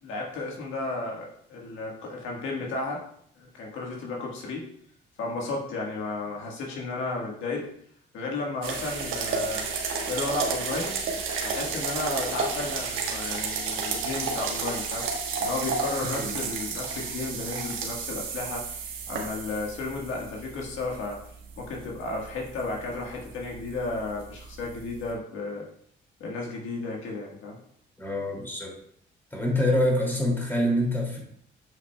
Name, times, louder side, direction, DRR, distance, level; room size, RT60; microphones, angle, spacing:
voice 1, 0.0-3.0 3.4-4.7 5.2-7.7 8.1-9.7 10.1-11.0 11.4-15.1 15.4-21.2 21.6-25.7 26.2-27.6, left 3 dB, 85° left, -1 dB, 1.5 m, -33 dB
sound 1, 8.6-25.1, right 5 dB, 85° right, 1.2 m, -32 dB
voice 2, 16.1-16.4 28.0-28.7 29.3-31.2, left 1 dB, 10° left, -1 dB, 2.4 m, -26 dB
7.6 x 6.0 x 2.2 m, 0.66 s
cardioid pair, 90°, 20 cm